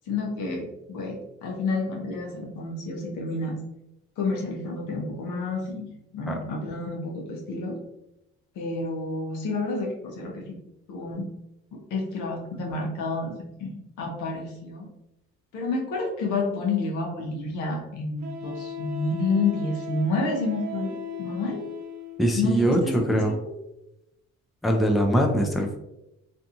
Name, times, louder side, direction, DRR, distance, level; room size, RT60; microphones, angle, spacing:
voice 1, 0.1-3.6 4.2-7.8 8.6-10.6 10.9-11.3 11.7-14.9 15.5-21.6 22.4-23.3, left 3 dB, 85° left, 0 dB, 0.8 m, -29 dB
Wind instrument woodwind instrument, 18.2-22.3, left 2 dB, 70° right, 0.7 m, -37 dB
voice 2, 22.2-23.3 24.6-25.8, equal, ahead, 2 dB, 0.4 m, -22 dB
2.6 x 2.3 x 2.7 m, 0.87 s
cardioid pair, 90°, 30 cm